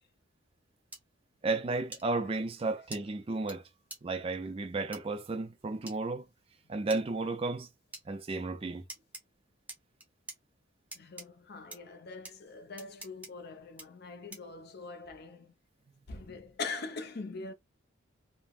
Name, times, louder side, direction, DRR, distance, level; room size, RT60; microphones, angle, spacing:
sound 1, 0.9-1.0 1.9-2.0 2.9-3.0 3.5-3.6 3.9-4.0 4.9-5.0 5.9-6.0 6.9-7.0 7.9-8.0 8.9-9.2 9.7-10.4 10.9-11.3 11.7-11.8 12.2-12.3 12.8-13.3 13.8-13.9 14.3-14.5, right 2 dB, 10° right, 0.7 m, -44 dB
voice 1, 1.4-3.6 4.0-6.2 6.7-7.7 8.1-8.8, right 3 dB, 30° right, 0.4 m, -33 dB
voice 2, 10.9-15.5 16.1-17.5, left 3 dB, 50° left, 0.6 m, -42 dB
3.3 x 2.1 x 2.3 m
head